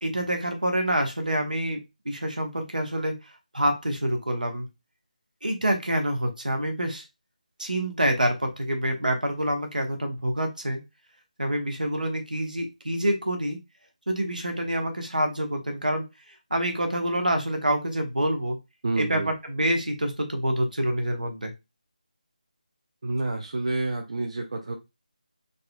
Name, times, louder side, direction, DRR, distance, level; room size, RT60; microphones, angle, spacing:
voice 1, 0.0-4.7 5.4-7.0 7.6-10.8 11.4-13.6 14.1-18.6 19.0-21.5, right 1 dB, 75° right, 4 dB, 1.0 m, -27 dB
voice 2, 18.8-19.3 23.0-24.8, right 2 dB, 45° right, 3 dB, 0.5 m, -29 dB
4.0 x 2.5 x 2.2 m, 0.23 s
figure-of-eight pair, 160°, 4 cm